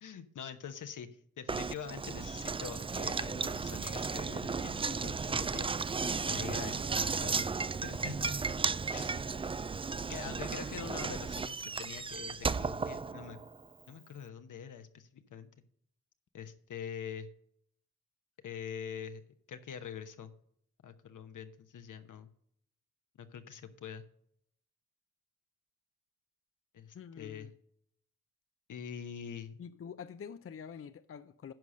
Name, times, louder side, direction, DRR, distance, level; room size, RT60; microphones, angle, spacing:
voice 1, 0.0-1.1 1.4-5.7 6.3-7.5 7.8-8.3 8.9-9.2 10.1-13.4 13.9-15.5 16.3-17.3 18.4-19.2 19.5-20.3 20.8-22.3 23.2-24.0 26.7-27.5 28.7-29.6, left 7 dB, 70° left, 1.1 m, -44 dB
Knock, 1.5-13.6, right 4 dB, 20° right, 0.3 m, -34 dB
voice 2, 26.9-27.5 29.6-31.5, left 7 dB, 45° left, 0.5 m, -46 dB
11.0 x 4.9 x 6.5 m
cardioid pair, 60°, 32 cm